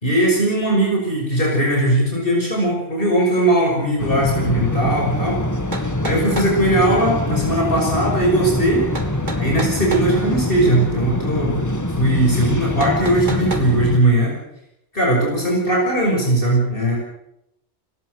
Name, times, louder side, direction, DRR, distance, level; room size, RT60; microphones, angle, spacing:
voice 1, 0.0-5.4 6.0-8.9 9.4-11.6 12.0-14.3 14.9-17.0, right 1 dB, 50° left, -2 dB, 6.2 m, -19 dB
sound 1, 4.0-14.0, left 1 dB, 15° left, 1.8 m, -24 dB
sound 2, 5.7-6.6 8.9-10.1 12.8-13.7, right 2 dB, 40° right, 2.2 m, -30 dB
29.5 x 17.5 x 6.4 m, 0.79 s
omnidirectional pair, 1.2 m